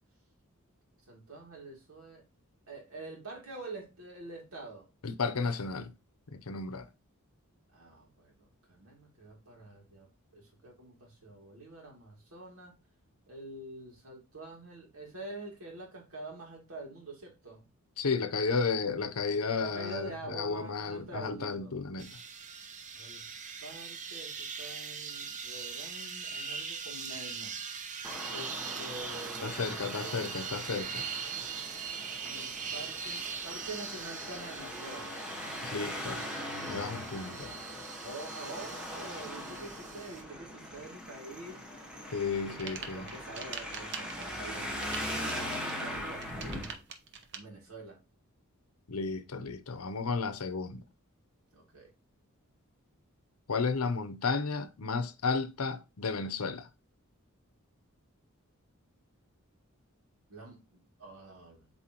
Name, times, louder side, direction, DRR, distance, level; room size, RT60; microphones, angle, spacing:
voice 1, 1.1-2.2 2.7-4.9 7.7-10.1 10.3-12.7 13.3-17.7 19.6-21.7 22.9-23.3 23.6-27.6 28.3-30.2 31.3-31.5 32.2-35.1 38.0-41.6 42.4-46.9 47.3-48.0 51.5-51.9 60.3-61.7, right 2 dB, 75° right, 2.7 m, -46 dB
voice 2, 5.0-5.9 6.3-6.9 18.0-22.2 29.4-31.1 35.6-36.2 36.7-37.5 42.1-43.1 48.9-50.8 53.5-56.7, left 4 dB, 80° left, 0.8 m, -33 dB
sound 1, 22.0-40.2, right 6 dB, 35° right, 0.7 m, -41 dB
Traffic noise roadway noise, 28.0-46.7, equal, 5° right, 1.3 m, -41 dB
sound 2, 42.3-47.4, right 6 dB, 55° right, 1.0 m, -43 dB
7.8 x 4.1 x 3.0 m
head